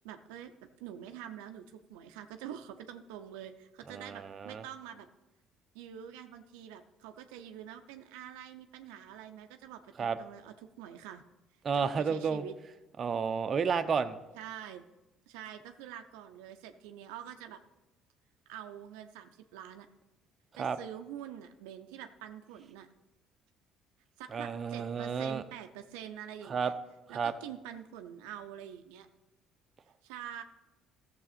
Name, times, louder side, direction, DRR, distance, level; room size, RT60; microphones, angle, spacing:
voice 1, 0.0-0.5 0.8-5.1 5.7-11.2 11.7-12.5 14.3-14.8 15.3-17.6 18.5-19.9 20.6-22.9 24.2-26.7 27.1-29.1 30.0-30.4, right 10 dB, 85° right, 7 dB, 0.5 m, -46 dB
voice 2, 3.9-4.6 10.0-10.2 11.6-12.4 13.0-14.2 20.6-20.8 24.3-25.4 26.5-26.7 27.1-27.3, right 6 dB, 45° right, 9 dB, 0.6 m, -31 dB
13.0 x 7.0 x 4.2 m, 1.1 s
supercardioid pair, 75°, 0 cm